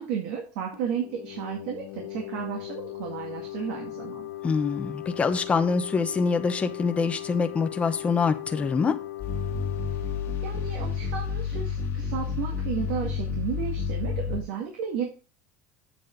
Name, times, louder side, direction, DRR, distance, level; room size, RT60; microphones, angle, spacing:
voice 1, 0.0-4.3 10.4-15.0, right 8 dB, 75° right, 1.9 m, -33 dB
sound 1, 0.7-12.1, left 15 dB, 85° left, 0.9 m, -39 dB
voice 2, 4.4-9.0, left 5 dB, 20° left, 0.8 m, -25 dB
sound 2, 9.2-14.4, left 6 dB, 40° left, 1.6 m, -30 dB
8.1 x 7.1 x 3.8 m
cardioid pair, 150°, 7 cm